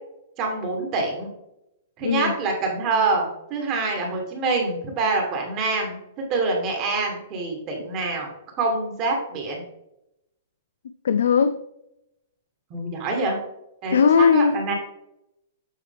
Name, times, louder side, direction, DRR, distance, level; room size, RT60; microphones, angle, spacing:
voice 1, 0.4-1.3 2.0-6.0 6.3-8.3 8.6-9.6 12.7-13.4 13.8-14.7, right 3 dB, 20° right, 1 dB, 1.1 m, -25 dB
voice 2, 2.0-2.4 11.0-11.6 13.9-14.6, left 6 dB, 80° left, 11 dB, 0.4 m, -18 dB
7.4 x 4.6 x 3.4 m, 0.82 s
hypercardioid pair, 180°, 0 cm